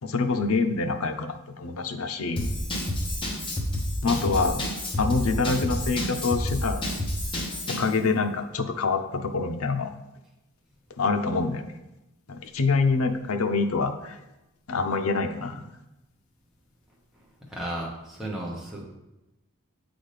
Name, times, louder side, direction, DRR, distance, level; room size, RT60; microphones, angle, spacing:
voice 1, 0.0-2.6 4.0-4.6 5.0-6.8 7.7-9.9 11.0-11.6 12.3-14.2 14.7-15.6, left 4 dB, 80° left, 6 dB, 0.6 m, -26 dB
Drum kit / Drum, 2.4-7.9, left 1 dB, 25° left, 0.9 m, -29 dB
voice 2, 17.5-18.8, right 1 dB, ahead, -5 dB, 1.0 m, -34 dB
8.0 x 4.0 x 3.4 m, 0.96 s
head